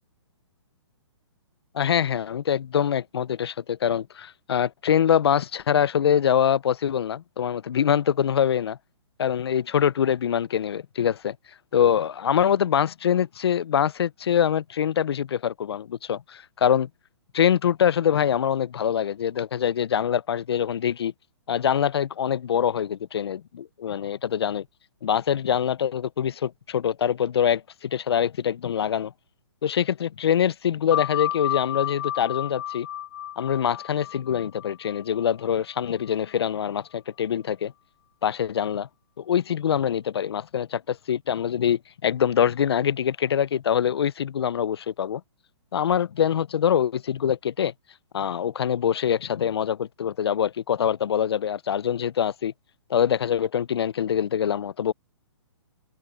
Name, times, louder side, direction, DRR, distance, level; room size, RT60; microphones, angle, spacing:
voice 1, 1.7-8.8 9.2-11.4 11.7-16.9 17.3-21.1 21.5-24.6 25.0-29.1 29.6-32.9 33.4-37.7 38.2-38.9 39.2-45.2 45.7-47.7 48.1-52.5 52.9-54.9, left 9 dB, 60° left, 0.4 m, -24 dB
sound 1, 30.9-36.1, left 11 dB, 40° left, 1.6 m, -32 dB
hypercardioid pair, 175°, 15 cm